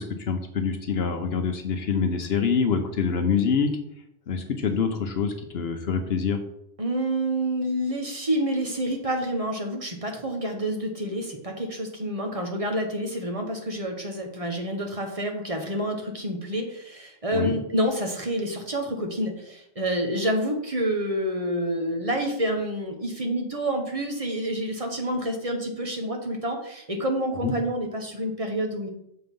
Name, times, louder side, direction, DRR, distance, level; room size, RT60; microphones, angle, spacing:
voice 1, 0.0-3.8 4.3-6.4 17.3-17.5 27.4-27.5, left 6 dB, 60° left, 6 dB, 1.0 m, -25 dB
voice 2, 6.8-28.9, right 1 dB, 30° right, 3 dB, 1.1 m, -28 dB
6.8 x 4.3 x 5.3 m, 0.76 s
omnidirectional pair, 1.2 m